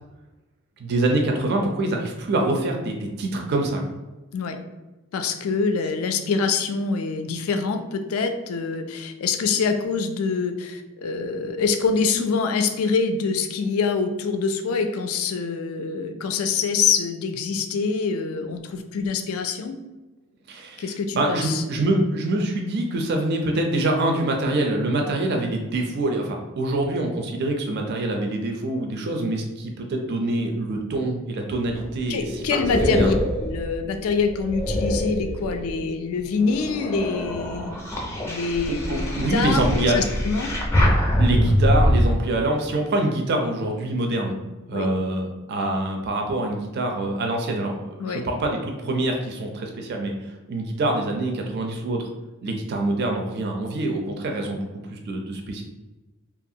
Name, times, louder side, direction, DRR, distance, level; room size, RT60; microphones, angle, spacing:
voice 1, 0.8-3.8 20.5-32.6 32.9-33.1 38.9-40.0 41.2-44.3 44.7-52.1 52.4-55.6, right 2 dB, 50° right, 2 dB, 0.4 m, -25 dB
voice 2, 5.1-19.8 20.8-21.6 32.1-33.1 33.4-37.8 38.3-40.5 44.7-44.9 48.0-48.2, left 5 dB, 80° left, 7 dB, 0.3 m, -25 dB
sound 1, 31.6-35.9 36.4-42.0, equal, 15° left, 0.4 m, -24 dB
2.9 x 2.4 x 2.7 m, 1.1 s
head